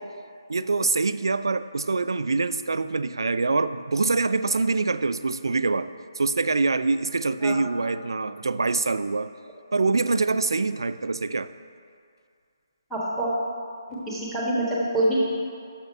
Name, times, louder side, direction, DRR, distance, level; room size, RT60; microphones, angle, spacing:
voice 1, 0.5-5.9 6.2-9.3 9.7-11.5, right 3 dB, 80° right, 13 dB, 0.3 m, -25 dB
voice 2, 12.9-13.3 14.1-15.2, right 1 dB, ahead, -6 dB, 1.5 m, -25 dB
6.8 x 5.3 x 6.1 m, 2.3 s
figure-of-eight pair, 155°, 2 cm